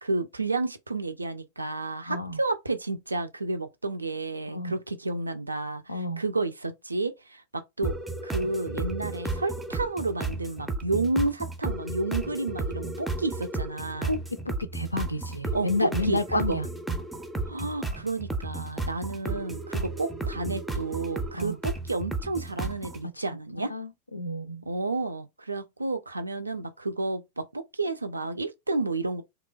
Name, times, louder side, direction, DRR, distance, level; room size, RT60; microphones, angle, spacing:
voice 1, 0.0-8.0 8.2-14.1 15.5-16.6 17.5-23.7 24.7-29.2, right 3 dB, 80° right, 0.4 m, -31 dB
voice 2, 2.1-2.4 4.5-4.7 5.9-6.2 14.1-16.7 17.6-17.7 21.4-21.6 23.7-24.6, left 2 dB, 85° left, 0.3 m, -30 dB
sound 1, 7.8-23.0, right 2 dB, 5° right, 0.4 m, -33 dB
2.8 x 2.1 x 2.3 m
figure-of-eight pair, 90°, 0 cm